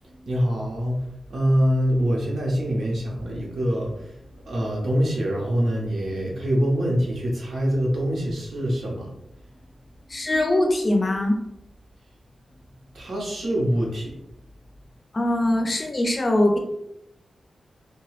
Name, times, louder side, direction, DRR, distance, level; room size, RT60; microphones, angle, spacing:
voice 1, 0.2-1.0 1.3-4.2 4.4-9.1 12.9-14.1, equal, 70° right, -3 dB, 0.9 m, -24 dB
voice 2, 10.1-11.4 15.1-16.6, left 1 dB, 35° left, 2 dB, 0.5 m, -22 dB
2.9 x 2.2 x 3.1 m, 0.82 s
wide cardioid pair, 125°, 0 cm